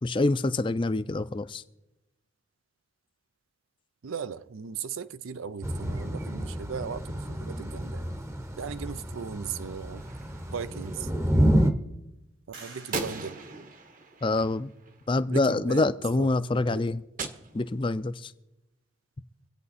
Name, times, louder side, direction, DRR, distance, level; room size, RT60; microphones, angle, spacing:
voice 1, 0.0-1.6 14.2-14.7 15.1-17.0 17.5-18.3, left 2 dB, 25° left, 0.4 m, -26 dB
voice 2, 4.0-8.1 8.6-10.0 10.5-11.1 12.6-13.4 15.3-15.9 16.2-16.3 16.7-16.8, right 6 dB, 90° right, 0.5 m, -37 dB
Thunder / Rain, 5.6-11.7, equal, 15° right, 0.7 m, -29 dB
Gunshot gunfire, 9.9-11.0 12.9-15.3 17.2-18.2, right 3 dB, 40° right, 1.0 m, -39 dB
sound 1, 12.5-14.5, right 3 dB, 70° right, 2.9 m, -51 dB
25.0 x 8.7 x 4.2 m
head